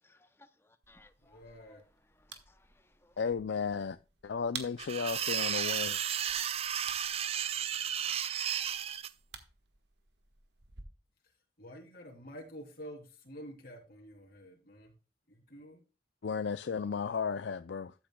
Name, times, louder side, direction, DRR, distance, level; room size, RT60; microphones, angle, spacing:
voice 1, 0.0-3.2, left 2 dB, 15° left, 0.7 m, -64 dB
sound 1, 0.8-10.8, right 7 dB, 70° right, 1.5 m, -52 dB
voice 2, 1.3-1.8 11.6-14.9 15.3-15.8, equal, 55° left, 3.3 m, -49 dB
voice 3, 3.2-4.0 4.2-6.0 16.2-17.9, left 6 dB, 75° left, 0.4 m, -34 dB
sound 2, 4.8-9.1, right 9 dB, 35° right, 0.3 m, -33 dB
13.0 x 8.8 x 2.3 m
head